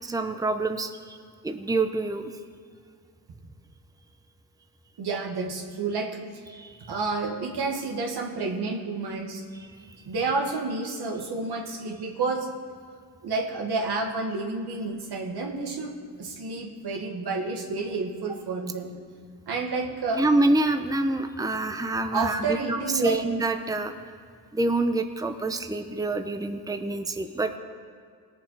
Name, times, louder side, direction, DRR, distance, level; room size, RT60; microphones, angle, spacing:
voice 1, 0.0-1.2 1.4-2.3 6.5-6.9 20.2-23.9 24.5-27.6, right 2 dB, 10° right, 7 dB, 0.7 m, -26 dB
voice 2, 5.0-6.2 6.9-9.4 10.1-12.5 13.2-15.9 16.2-18.9 19.5-20.2 22.1-23.2, right 3 dB, 85° right, 1 dB, 1.9 m, -30 dB
19.5 x 7.4 x 4.8 m, 2.1 s
cardioid pair, 85°, 39 cm